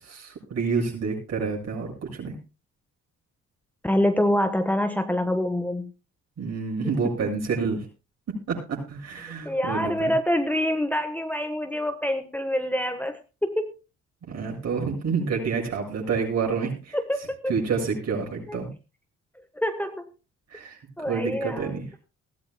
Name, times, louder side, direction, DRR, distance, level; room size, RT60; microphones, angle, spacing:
voice 1, 0.1-2.4 6.4-7.9 8.3-10.1 14.3-17.0 17.5-18.7 20.5-21.8, right 5 dB, 60° right, 1 dB, 7.4 m, -28 dB
voice 2, 3.8-5.9 6.8-6.9 9.4-13.7 17.1-17.5 18.5-18.6 19.5-20.0 21.0-21.7, left 1 dB, 5° left, 7 dB, 1.2 m, -26 dB
21.0 x 14.5 x 2.2 m, 0.31 s
cardioid pair, 90°, 30 cm